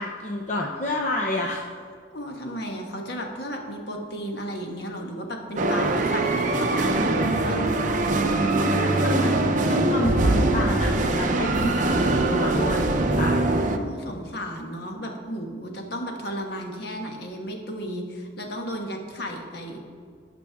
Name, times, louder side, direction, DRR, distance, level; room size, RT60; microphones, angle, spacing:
voice 1, 0.0-1.6 8.6-13.4, left 1 dB, 40° left, 0 dB, 0.6 m, -29 dB
voice 2, 2.1-7.7 13.8-19.8, equal, 55° left, 2 dB, 1.3 m, -34 dB
sound 1, 5.6-13.8, right 2 dB, 40° right, 0.6 m, -22 dB
16.5 x 6.2 x 3.5 m, 2.1 s
head